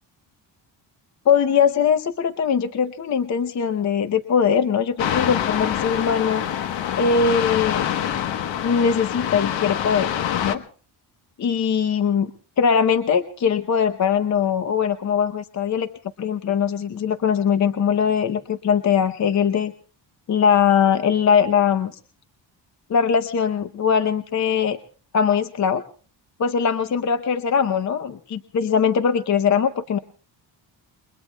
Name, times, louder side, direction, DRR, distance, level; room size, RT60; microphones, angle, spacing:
voice 1, 1.3-6.4 7.0-7.9 8.6-10.1 10.4-10.6 11.4-12.3 12.6-15.9 16.2-19.7 20.3-21.9 22.9-24.8 25.1-25.8 26.4-30.0, left 7 dB, 40° left, 10 dB, 0.7 m, -21 dB
sound 1, 5.0-10.6, left 10 dB, 80° left, 1.2 m, -25 dB
29.0 x 22.0 x 2.2 m, 0.42 s
cardioid pair, 155°, 45 cm